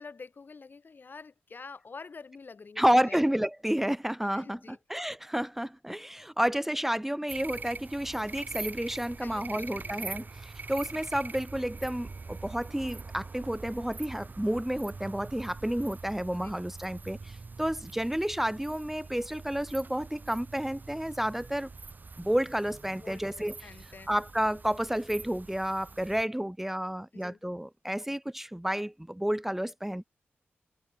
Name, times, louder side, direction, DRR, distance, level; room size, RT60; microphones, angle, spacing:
voice 1, 0.0-3.2 4.3-4.8 9.2-10.3 16.4-16.6 23.0-24.1 26.9-27.4, left 4 dB, 50° left, 1.6 m, -48 dB
voice 2, 2.8-21.7 22.2-23.6 24.1-30.0, equal, 5° right, 0.8 m, -30 dB
sound 1, 7.3-26.2, right 4 dB, 45° right, 4.2 m, -44 dB
cardioid pair, 75°, 4 cm